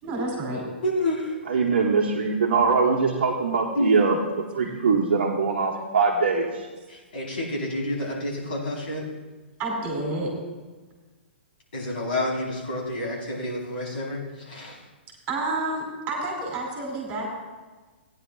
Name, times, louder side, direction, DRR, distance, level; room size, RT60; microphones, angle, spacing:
voice 1, 0.0-0.6 9.6-10.3 15.3-17.3, right 2 dB, 25° right, -1 dB, 3.2 m, -29 dB
voice 2, 0.8-1.4 3.7-4.0 6.9-9.1 11.7-14.8, left 1 dB, 55° left, -3 dB, 4.1 m, -29 dB
voice 3, 1.5-6.7, right 4 dB, 60° right, -2 dB, 1.2 m, -22 dB
18.0 x 9.9 x 2.4 m, 1.3 s
figure-of-eight pair, 115°, 6 cm